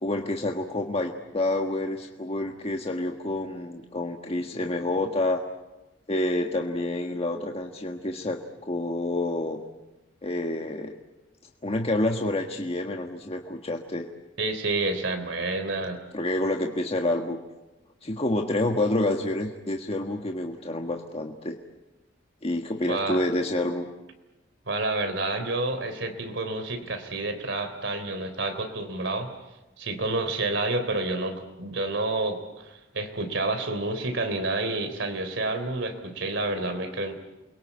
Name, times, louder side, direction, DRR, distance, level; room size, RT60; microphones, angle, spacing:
voice 1, 0.0-5.4 6.1-9.6 10.2-11.0 11.6-14.1 16.1-17.4 18.0-21.6 22.4-23.8, left 1 dB, 30° left, 2 dB, 1.5 m, -28 dB
voice 2, 14.4-16.0 22.9-23.2 24.7-29.3 29.8-37.1, right 2 dB, 70° right, 8 dB, 3.5 m, -29 dB
29.0 x 22.5 x 8.5 m, 1.0 s
head